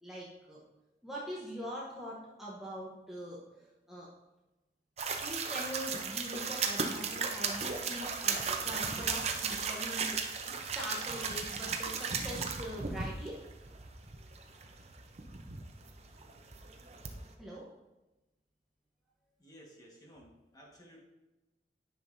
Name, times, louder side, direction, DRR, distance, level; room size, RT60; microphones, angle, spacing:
voice 1, 0.0-0.6 1.0-4.1 5.2-10.2 10.7-13.4 17.4-17.7, equal, ahead, -6 dB, 0.9 m, -43 dB
sound 1, 5.0-17.3, right 5 dB, 35° right, 0.7 m, -36 dB
voice 2, 19.4-21.0, equal, 20° left, -2 dB, 1.4 m, -56 dB
10.5 x 5.8 x 2.7 m, 1.0 s
head